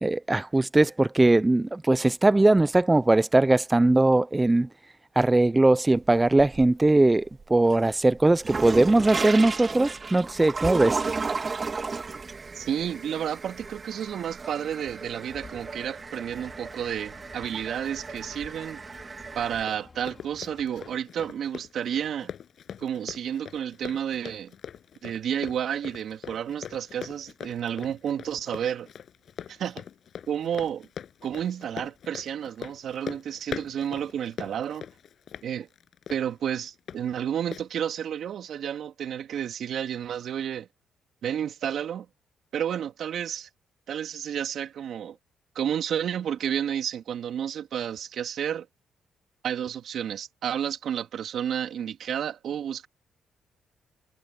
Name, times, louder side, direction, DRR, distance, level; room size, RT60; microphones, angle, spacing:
voice 1, 0.0-4.7 5.2-11.0, right 2 dB, 15° right, 0.5 m, -20 dB
sound 1, 5.9-6.9 7.3-19.6, right 4 dB, 35° right, 1.7 m, -34 dB
voice 2, 12.5-18.8 19.3-22.3 22.8-24.5 25.0-28.9 29.5-29.8 30.3-30.9 31.2-34.9 35.4-35.7 36.1-40.7 41.2-42.1 42.5-43.5 43.9-45.2 45.5-48.7 49.4-52.9, right 9 dB, 65° right, 3.2 m, -31 dB
sound 2, 15.3-21.0, left 4 dB, 30° left, 4.8 m, -51 dB
Run, 19.2-37.0 37.5-37.7, left 8 dB, 60° left, 6.7 m, -42 dB
cardioid pair, 90°, 0 cm